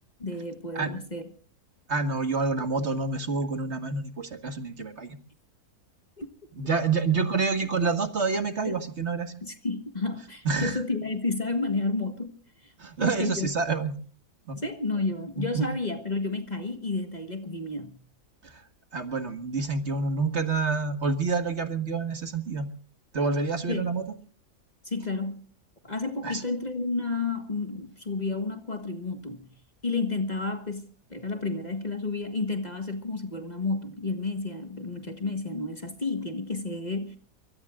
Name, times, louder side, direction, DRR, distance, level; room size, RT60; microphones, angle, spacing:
voice 1, 0.2-1.3 6.2-6.3 8.6-8.8 9.4-12.4 12.6-12.7 13.0-13.5 14.5-18.0 23.7-23.9 24.8-25.4 25.8-29.5 29.8-37.2, left 3 dB, 30° left, 1.7 m, -31 dB
voice 2, 1.9-5.2 6.6-9.3 10.5-10.8 12.8-13.9 14.5-14.6 15.4-15.7 18.4-18.6 18.9-22.7 23.1-24.0 26.2-26.4, right 4 dB, 50° right, 1.9 m, -28 dB
24.5 x 22.0 x 2.5 m
omnidirectional pair, 1.6 m